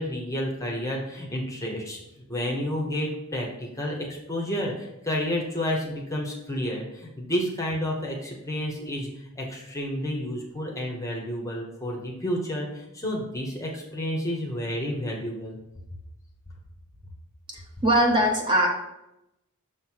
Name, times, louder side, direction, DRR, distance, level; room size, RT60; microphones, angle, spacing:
voice 1, 0.0-2.0 2.3-15.6, equal, 15° left, -1 dB, 0.9 m, -30 dB
voice 2, 17.5-18.7, equal, 20° right, 0 dB, 1.0 m, -21 dB
6.5 x 3.1 x 5.6 m, 0.88 s
head